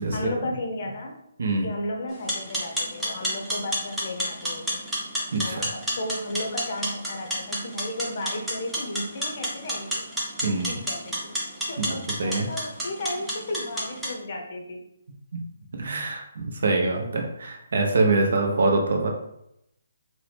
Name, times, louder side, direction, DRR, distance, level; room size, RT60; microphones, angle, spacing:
voice 1, 0.1-1.2 1.6-4.8 5.4-10.1 10.4-11.3 11.7-14.8, left 1 dB, 45° left, 2 dB, 0.6 m, -34 dB
sound 1, 2.1-14.1, equal, 5° right, 0.7 m, -31 dB
voice 2, 5.3-5.7 10.4-10.8 11.8-12.5 15.8-19.1, right 3 dB, 55° right, 2 dB, 0.6 m, -24 dB
2.8 x 2.1 x 3.2 m, 0.78 s
figure-of-eight pair, 140°, 0 cm